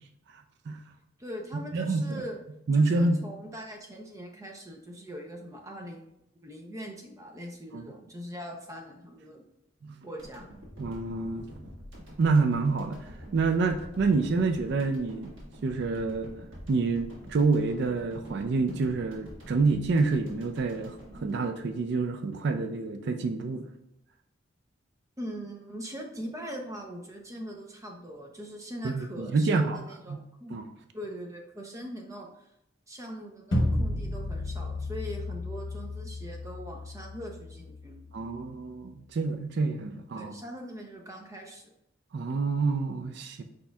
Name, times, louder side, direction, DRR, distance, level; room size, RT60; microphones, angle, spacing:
voice 1, 1.2-2.4 2.7-6.1 6.4-9.4 10.0-10.5 25.2-30.6 30.9-32.5 32.9-38.1 40.2-41.7, equal, 15° right, 1 dB, 0.6 m, -41 dB
voice 2, 1.7-2.2 2.7-3.2 7.7-7.8 9.8-10.0 10.8-11.5 12.2-13.0 13.3-15.3 15.6-16.3 16.7-23.7 28.8-29.8 30.1-30.2 30.5-30.6 38.1-40.4 42.1-43.4, right 3 dB, 60° right, 7 dB, 0.4 m, -27 dB
sound 1, 10.2-22.4, equal, 85° right, 1.6 m, -47 dB
sound 2, 33.5-38.5, left 1 dB, 80° left, 0.9 m, -33 dB
4.9 x 4.2 x 2.3 m, 0.82 s
head